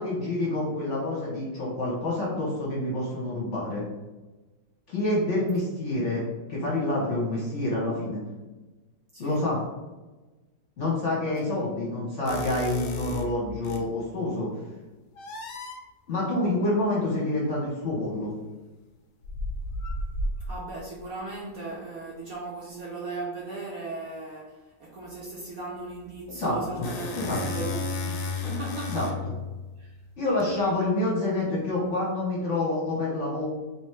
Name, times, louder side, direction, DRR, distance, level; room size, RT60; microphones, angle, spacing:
voice 1, 0.0-3.8 4.9-8.2 9.2-9.6 10.8-14.5 16.1-18.3 26.3-26.9 27.1-27.4 28.9-29.1 30.2-33.5, left 2 dB, 50° left, -5 dB, 1.1 m, -27 dB
sound 1, 12.3-13.9 15.2-15.8 17.8-18.0 19.2-20.8 26.3-30.5, left 3 dB, 75° left, 0.7 m, -34 dB
voice 2, 20.5-29.1 29.8-29.9, right 3 dB, 60° right, -3 dB, 1.0 m, -37 dB
3.3 x 3.0 x 3.1 m, 1.1 s
omnidirectional pair, 2.0 m